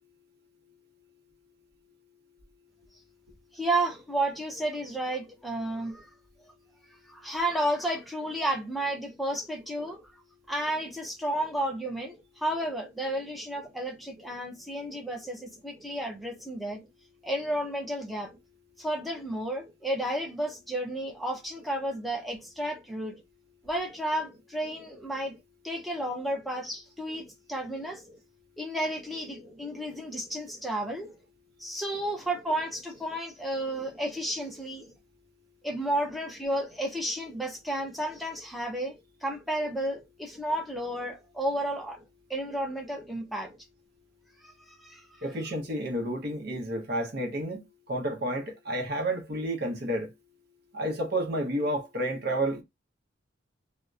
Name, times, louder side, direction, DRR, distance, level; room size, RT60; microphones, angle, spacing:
voice 1, 3.5-6.1 7.1-10.0 10.5-16.8 17.2-18.3 18.8-23.2 23.6-25.3 25.6-28.0 28.6-31.1 31.6-34.8 35.6-38.9 39.2-42.0 42.3-43.5 44.4-45.1, right 1 dB, ahead, 0.5 m, -32 dB
voice 2, 45.2-47.6 47.9-50.1 50.7-52.6, right 1 dB, 50° right, 0.7 m, -30 dB
2.7 x 2.0 x 2.3 m
head